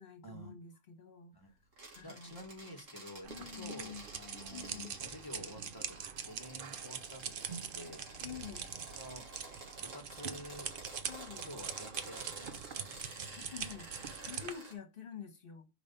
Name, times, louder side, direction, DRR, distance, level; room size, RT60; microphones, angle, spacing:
voice 1, 0.0-1.3 1.9-2.5 3.3-4.0 4.5-5.0 8.2-8.7 11.0-11.5 13.4-13.9 14.3-15.7, left 7 dB, 45° left, 1.5 m, -48 dB
sound 1, 1.7-14.7, right 2 dB, 80° right, 2.5 m, -51 dB
voice 2, 2.0-6.0 6.2-8.0 8.9-9.3 9.8-10.7 11.4-12.9, equal, 15° left, 1.6 m, -50 dB
sound 2, 3.2-14.5, right 7 dB, 50° right, 0.8 m, -43 dB
5.3 x 5.0 x 5.5 m
omnidirectional pair, 1.3 m